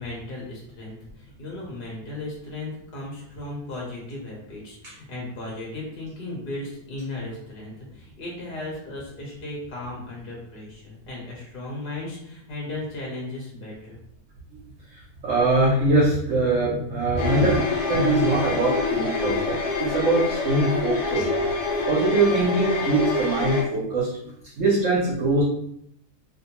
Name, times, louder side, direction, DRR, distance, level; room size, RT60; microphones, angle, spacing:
voice 1, 0.0-14.0, left 2 dB, 50° left, -3 dB, 0.7 m, -36 dB
voice 2, 14.9-17.6 17.9-21.3 21.9-24.3 24.6-25.4, right 2 dB, 65° right, -4 dB, 0.9 m, -23 dB
sound 1, 17.2-23.6, left 3 dB, 80° left, 1.2 m, -26 dB
2.6 x 2.1 x 2.8 m, 0.74 s
omnidirectional pair, 1.6 m